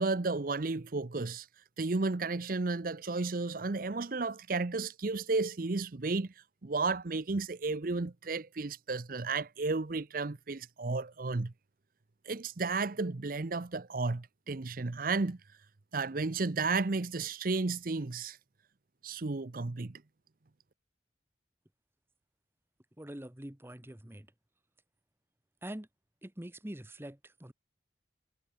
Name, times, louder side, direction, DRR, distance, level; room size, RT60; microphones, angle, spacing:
voice 1, 0.0-1.5 1.8-11.5 12.2-15.4 15.9-18.4 19.0-20.0, right 3 dB, 50° right, 0.7 m, -33 dB
voice 2, 23.0-24.3 25.6-25.9 26.2-27.5, right 1 dB, 15° right, 1.1 m, -44 dB
head